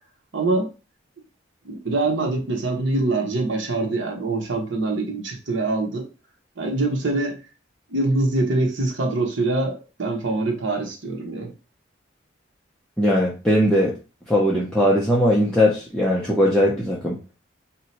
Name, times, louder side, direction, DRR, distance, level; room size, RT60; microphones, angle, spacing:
voice 1, 0.3-0.7 1.6-6.0 6.6-7.4 7.9-11.5, right 2 dB, 70° right, 1 dB, 0.9 m, -24 dB
voice 2, 13.0-13.9 14.3-17.2, equal, 5° left, -5 dB, 0.5 m, -19 dB
2.8 x 2.1 x 4.1 m, 0.33 s
head